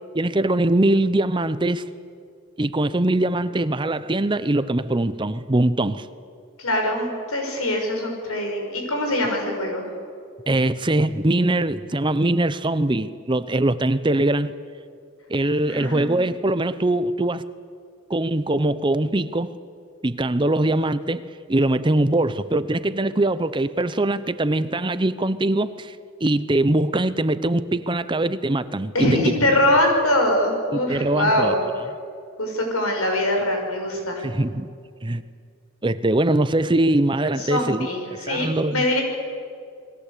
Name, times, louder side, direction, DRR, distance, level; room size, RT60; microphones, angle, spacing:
voice 1, 0.1-1.8 2.6-6.1 10.5-14.5 15.3-17.4 18.1-19.5 20.0-21.2 21.5-26.0 26.2-29.3 30.7-31.6 34.2-34.7 35.0-35.2 35.8-38.8, right 1 dB, 20° right, 0.6 m, -22 dB
voice 2, 6.6-9.9 15.7-16.2 28.9-31.6 32.4-34.2 37.4-39.0, left 1 dB, 85° left, 6.1 m, -23 dB
28.5 x 21.0 x 8.4 m
head